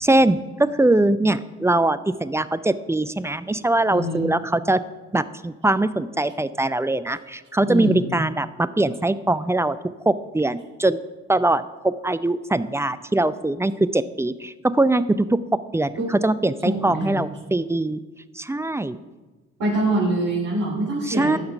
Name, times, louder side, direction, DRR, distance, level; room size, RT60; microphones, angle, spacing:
voice 1, 0.0-4.8 5.1-9.8 10.1-11.0 11.3-15.4 15.7-18.0 18.4-19.0 21.1-21.4, right 2 dB, 10° right, 14 dB, 0.4 m, -22 dB
voice 2, 3.9-4.3 7.7-8.0 16.0-16.1 16.6-17.3 19.6-21.4, right 1 dB, 55° right, -5 dB, 2.9 m, -24 dB
13.5 x 5.8 x 5.5 m, 1.2 s
hypercardioid pair, 45°, 36 cm